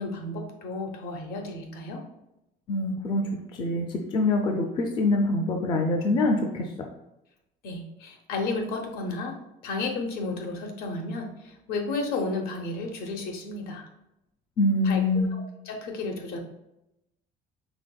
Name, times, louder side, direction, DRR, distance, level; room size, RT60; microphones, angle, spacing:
voice 1, 0.0-2.0 7.6-9.4 9.6-13.9 14.8-15.0 15.6-16.4, left 3 dB, 65° left, 3 dB, 0.8 m, -32 dB
voice 2, 2.7-3.9 4.1-6.6 14.6-15.3, left 2 dB, 30° left, 3 dB, 0.4 m, -24 dB
5.0 x 3.6 x 2.2 m, 0.88 s
cardioid pair, 170°, 17 cm